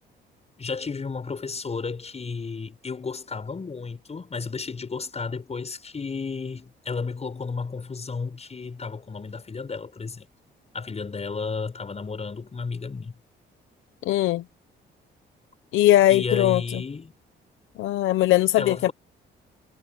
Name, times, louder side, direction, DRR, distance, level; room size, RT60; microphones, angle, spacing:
voice 1, 0.6-10.2 10.7-13.1 16.1-17.1 18.6-18.9, left 4 dB, 35° left, 6.6 m, -33 dB
voice 2, 14.0-14.4 15.7-16.8 17.8-18.9, left 14 dB, 90° left, 0.9 m, -20 dB
cardioid pair, 90°, 20 cm